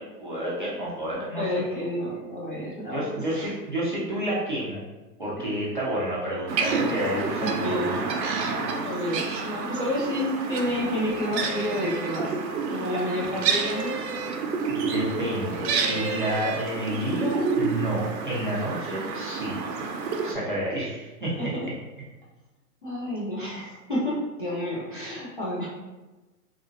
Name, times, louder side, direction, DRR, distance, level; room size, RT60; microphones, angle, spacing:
voice 1, 0.0-1.6 2.9-4.8 5.2-7.9 14.7-19.6 20.2-21.5, right 1 dB, 35° right, -8 dB, 0.4 m, -30 dB
voice 2, 1.3-3.5 6.3-6.5 7.4-8.1 8.8-12.3 12.7-14.0 20.3-20.4 21.4-21.6 22.8-25.7, left 1 dB, 35° left, -8 dB, 0.4 m, -30 dB
sound 1, 6.5-20.3, right 4 dB, 80° right, 0.6 m, -29 dB
2.9 x 2.5 x 2.4 m, 1.1 s
hypercardioid pair, 170°, 49 cm